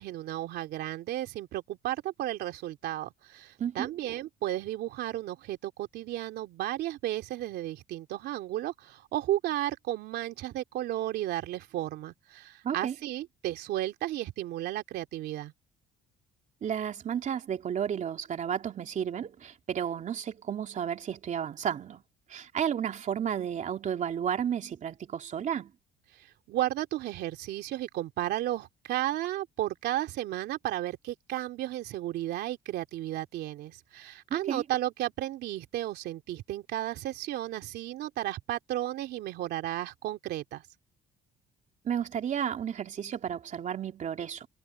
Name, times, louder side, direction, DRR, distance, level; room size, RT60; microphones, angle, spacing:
voice 1, 0.0-15.5 26.2-40.6, right 14 dB, 75° right, 3.0 m, -33 dB
voice 2, 3.6-3.9 12.6-12.9 16.6-22.0 22.3-25.7 34.3-34.6 41.8-44.5, right 8 dB, 45° right, 3.1 m, -32 dB
cardioid pair, 110°, 17 cm